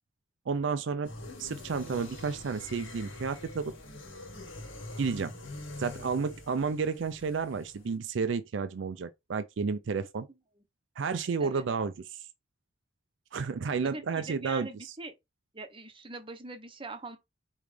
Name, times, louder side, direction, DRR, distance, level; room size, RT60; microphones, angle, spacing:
voice 1, 0.5-1.1 1.4-3.7 5.0-5.3 5.8-10.3 11.0-12.2 13.3-14.7, right 5 dB, 70° right, 0.4 m, -31 dB
sound 1, 1.0-7.9, left 2 dB, 80° left, 1.8 m, -44 dB
voice 2, 13.8-15.1 15.5-17.2, right 3 dB, 25° right, 0.8 m, -42 dB
4.9 x 3.1 x 3.3 m
head